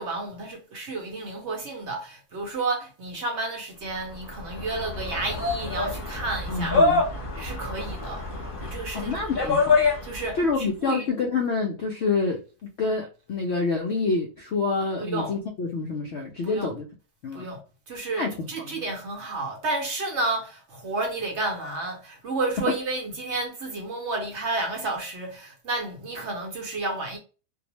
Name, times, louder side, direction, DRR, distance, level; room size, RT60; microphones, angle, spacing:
voice 1, 0.0-6.8 7.4-8.2 8.6-9.5 10.0-11.1 15.0-15.4 16.4-16.7 17.3-17.6 17.9-27.2, right 2 dB, 55° right, 0.9 m, -31 dB
fishermen shouts India, 4.1-10.4, left 3 dB, 25° left, 0.7 m, -26 dB
voice 2, 6.5-7.0 8.9-9.8 10.4-12.4 12.8-16.9 17.2-17.5 18.2-18.8, left 4 dB, 70° left, 0.6 m, -27 dB
2.6 x 2.0 x 2.8 m
omnidirectional pair, 1.6 m